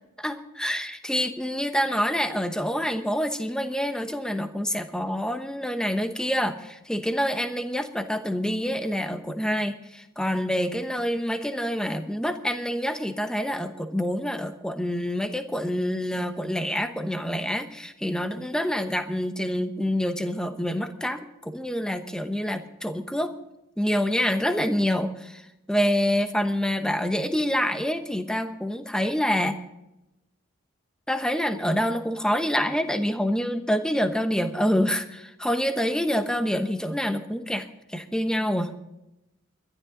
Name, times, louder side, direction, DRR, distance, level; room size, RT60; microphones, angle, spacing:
voice 1, 0.2-23.3 23.8-25.4 25.7-29.6 31.1-38.7, equal, 5° left, 8 dB, 0.9 m, -27 dB
21.5 x 12.0 x 3.8 m, 0.91 s
head